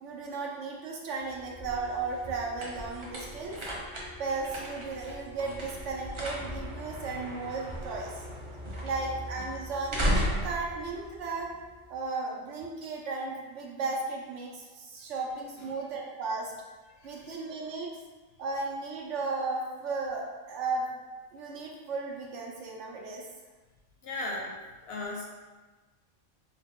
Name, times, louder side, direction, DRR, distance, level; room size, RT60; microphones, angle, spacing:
voice 1, 0.0-3.6 4.2-8.2 8.8-11.5 11.9-16.5 17.0-17.9 18.4-20.9 21.3-23.3, right 3 dB, 70° right, -1 dB, 0.9 m, -35 dB
sound 1, 1.2-11.9, equal, 40° right, 0.4 m, -36 dB
voice 2, 16.9-17.6 24.0-24.6 24.9-25.2, left 2 dB, 65° left, -1 dB, 0.7 m, -38 dB
3.8 x 2.2 x 3.5 m, 1.3 s
omnidirectional pair, 1.3 m